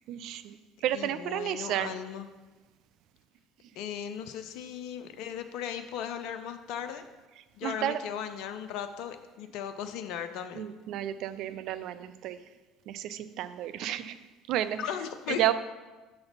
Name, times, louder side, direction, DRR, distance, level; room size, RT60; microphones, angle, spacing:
voice 1, 0.1-0.6 0.8-1.9 7.6-8.0 10.6-12.4 12.9-14.2 14.5-14.8 15.3-15.5, right 12 dB, 55° right, 12 dB, 0.3 m, -31 dB
voice 2, 0.9-2.3 3.8-7.1 7.6-10.7 14.8-15.4, left 9 dB, 55° left, 8 dB, 0.4 m, -37 dB
6.5 x 3.9 x 5.7 m, 1.2 s
figure-of-eight pair, 60°, 0 cm